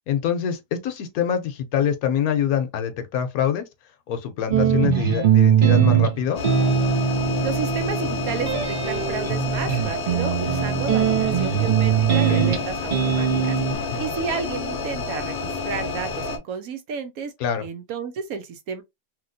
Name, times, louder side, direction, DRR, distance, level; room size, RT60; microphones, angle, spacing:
voice 1, 0.1-3.6 4.1-6.4 12.1-12.5 13.7-14.0 17.4-17.6, left 8 dB, 75° left, 1.1 m, -25 dB
sound 1, 4.5-13.7, right 8 dB, 55° right, 0.5 m, -21 dB
sound 2, 6.3-16.4, left 3 dB, 55° left, 0.7 m, -29 dB
voice 2, 7.4-17.3 17.6-18.8, right 6 dB, 70° right, 1.0 m, -32 dB
2.9 x 2.8 x 2.5 m
omnidirectional pair, 1.7 m